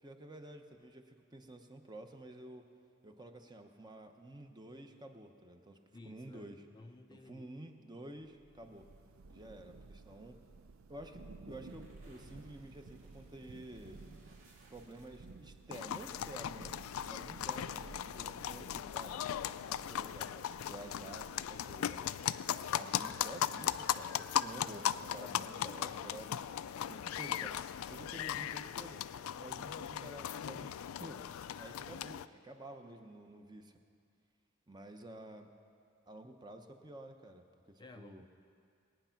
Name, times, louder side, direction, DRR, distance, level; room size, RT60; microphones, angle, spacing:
voice 1, 0.0-2.7 3.0-5.8 6.0-6.6 7.1-8.9 9.3-10.4 10.9-14.0 14.7-16.7 17.1-19.2 19.7-22.0 22.7-26.3 26.9-27.6 27.9-29.0 29.4-30.7 31.0-33.7 34.7-35.5 36.1-38.2, right 1 dB, 20° right, 5 dB, 0.8 m, -51 dB
voice 2, 5.9-7.5 37.8-38.3, left 2 dB, 20° left, 6 dB, 0.4 m, -55 dB
Thunder / Rain, 8.2-22.3, right 3 dB, 85° right, 0.5 m, -55 dB
sound 1, 11.5-15.7, right 1 dB, 65° right, 2.3 m, -61 dB
sound 2, 15.7-32.3, left 10 dB, 90° left, 0.3 m, -38 dB
20.5 x 9.0 x 5.8 m, 2.4 s
head